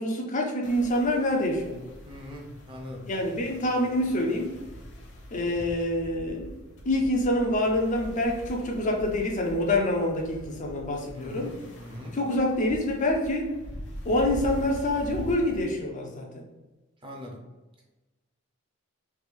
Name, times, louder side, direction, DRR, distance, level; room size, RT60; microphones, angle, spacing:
voice 1, 0.0-1.9 3.1-4.6 5.3-6.6 6.9-11.5 12.1-13.5 14.0-16.5, left 1 dB, 35° left, 1 dB, 0.5 m, -26 dB
sound 1, 0.6-15.7, left 1 dB, 55° left, 0.9 m, -43 dB
voice 2, 2.0-3.1 11.1-12.2 17.0-17.4, left 1 dB, 25° right, -1 dB, 0.7 m, -41 dB
3.2 x 2.4 x 3.3 m, 1.1 s
head